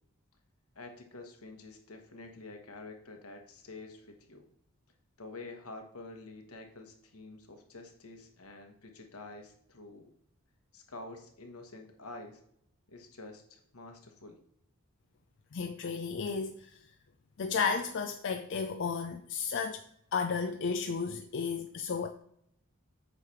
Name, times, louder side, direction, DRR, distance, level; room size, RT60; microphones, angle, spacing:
voice 1, 0.7-4.4 5.2-10.1 10.7-12.4 12.9-14.4, left 2 dB, 80° left, 1.3 m, -48 dB
voice 2, 15.5-16.8 17.4-19.8 20.1-22.1, left 5 dB, 55° left, 0.4 m, -33 dB
8.1 x 3.3 x 5.7 m
head